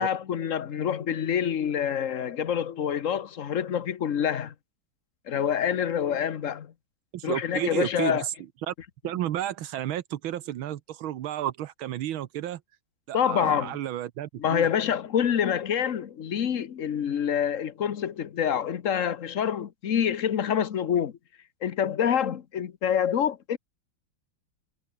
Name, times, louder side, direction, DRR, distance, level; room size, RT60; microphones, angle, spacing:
voice 1, 0.0-4.5 5.3-6.7 7.2-8.2 13.1-13.7 14.4-21.1 21.6-23.6, left 8 dB, 50° left, 1.2 m, -26 dB
voice 2, 7.1-8.3 8.6-8.7 9.0-12.6 13.1-14.7, right 12 dB, 80° right, 1.7 m, -32 dB
omnidirectional pair, 2.2 m